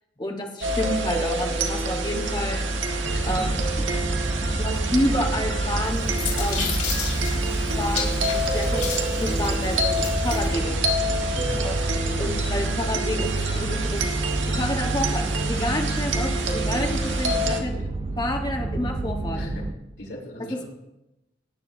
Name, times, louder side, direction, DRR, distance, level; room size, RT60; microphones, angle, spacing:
voice 1, 0.2-2.7 3.3-3.4 4.6-6.8 7.8-8.8 9.2-10.8 11.6-11.7 12.2-14.0 14.6-17.7 18.2-19.4 20.5-20.6, left 1 dB, 25° left, 2 dB, 1.3 m, -29 dB
sound 1, 0.6-17.6, right 1 dB, 90° right, 1.4 m, -26 dB
sound 2, 3.0-19.7, right 2 dB, 25° right, 0.6 m, -30 dB
voice 2, 3.1-3.6 3.9-4.0 11.3-11.6 17.1-17.9 19.3-20.6, left 1 dB, 75° left, -3 dB, 4.7 m, -39 dB
sound 3, 5.7-10.5, left 6 dB, 40° left, 2.9 m, -33 dB
18.0 x 9.9 x 2.7 m, 0.90 s
head